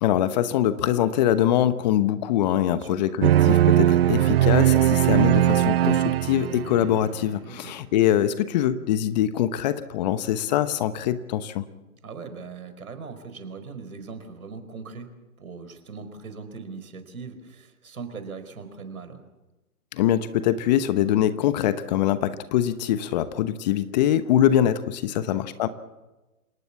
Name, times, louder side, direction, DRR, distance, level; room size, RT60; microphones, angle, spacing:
voice 1, 0.0-11.7 19.9-25.7, left 11 dB, 30° left, 13 dB, 1.0 m, -23 dB
voice 2, 2.7-3.0 7.5-7.8 12.0-15.1 15.4-19.2 25.1-25.4, right 5 dB, 70° right, 9 dB, 4.9 m, -40 dB
sound 1, 3.2-7.0, right 12 dB, 40° right, 0.7 m, -19 dB
27.0 x 18.5 x 7.2 m, 1.1 s
hypercardioid pair, 135°, 44 cm